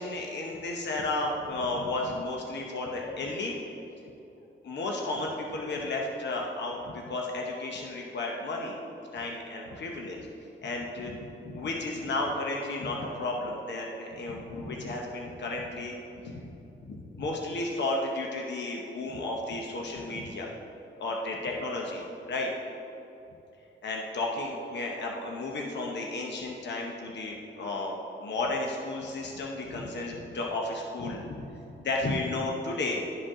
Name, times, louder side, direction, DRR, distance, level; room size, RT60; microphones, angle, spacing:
voice 1, 0.0-3.5 4.6-8.8 9.1-10.3 10.6-16.0 16.2-16.4 16.8-20.5 21.0-22.5 23.8-31.5 31.8-33.0, left 2 dB, 60° left, 0 dB, 0.8 m, -33 dB
11.5 x 5.0 x 3.7 m, 2.8 s
wide cardioid pair, 160°, 21 cm